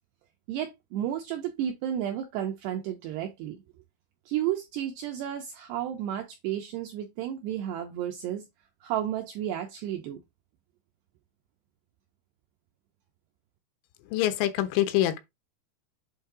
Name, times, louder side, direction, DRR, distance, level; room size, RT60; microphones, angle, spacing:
voice 1, 0.5-3.6 4.3-8.5 8.8-10.2, right 11 dB, 80° right, 2.4 m, -32 dB
voice 2, 14.1-15.2, left 13 dB, 85° left, 3.4 m, -25 dB
8.1 x 2.8 x 4.7 m
omnidirectional pair, 5.7 m